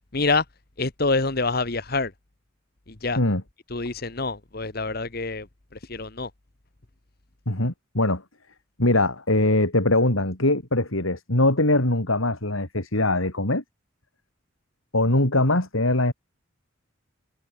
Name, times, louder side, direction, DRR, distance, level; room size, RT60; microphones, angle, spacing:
voice 1, 0.1-0.4 0.8-2.1 3.0-3.2 3.7-5.5 5.7-6.3, left 3 dB, 50° left, 1.5 m, -26 dB
voice 2, 7.5-8.2 8.8-13.6 14.9-16.1, left 2 dB, 85° left, 4.7 m, -22 dB
head